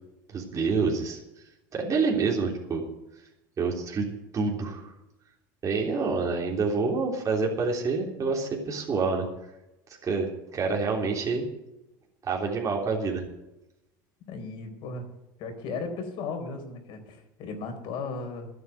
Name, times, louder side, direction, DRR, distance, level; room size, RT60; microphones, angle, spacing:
voice 1, 0.3-1.2 1.7-2.8 3.6-4.1 4.3-4.9 5.6-9.3 10.0-11.5 12.2-13.2, right 4 dB, 30° right, -1 dB, 3.4 m, -27 dB
voice 2, 14.3-15.1 15.4-18.5, left 4 dB, 55° left, 5 dB, 4.2 m, -36 dB
13.5 x 9.5 x 8.1 m, 0.93 s
hypercardioid pair, 95°, 10 cm